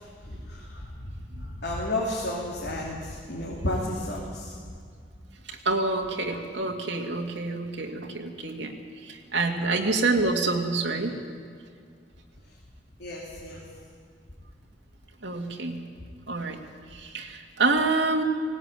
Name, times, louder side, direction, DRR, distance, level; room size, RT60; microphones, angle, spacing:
voice 1, 0.0-4.5 9.6-9.7 13.0-13.6, left 1 dB, 65° left, -4 dB, 3.2 m, -32 dB
voice 2, 5.5-11.2 15.2-15.8 16.3-16.6 16.9-18.2, right 3 dB, 80° right, 2 dB, 2.3 m, -27 dB
19.0 x 18.5 x 9.2 m, 2.1 s
head